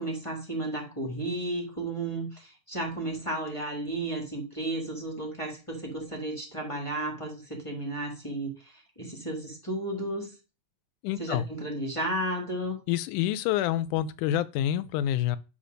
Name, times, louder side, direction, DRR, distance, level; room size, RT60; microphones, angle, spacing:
voice 1, 0.0-10.3 11.2-12.8, right 1 dB, 20° left, 1.0 m, -33 dB
voice 2, 11.0-11.4 12.9-15.4, left 12 dB, 85° left, 2.1 m, -27 dB
9.6 x 3.2 x 6.3 m
omnidirectional pair, 3.5 m